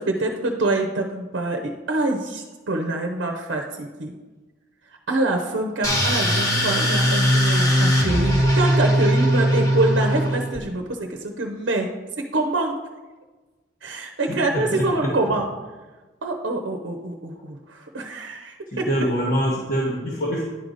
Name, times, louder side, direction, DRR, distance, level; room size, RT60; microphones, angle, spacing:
voice 1, 0.0-4.1 5.1-12.8 13.8-15.5 16.2-18.9, right 2 dB, 80° right, 3 dB, 0.8 m, -25 dB
sound 1, 5.8-10.6, equal, 20° left, 1.2 m, -20 dB
voice 2, 14.3-15.1 18.7-20.4, equal, 50° left, -4 dB, 1.1 m, -25 dB
10.5 x 4.9 x 4.0 m, 1.2 s
head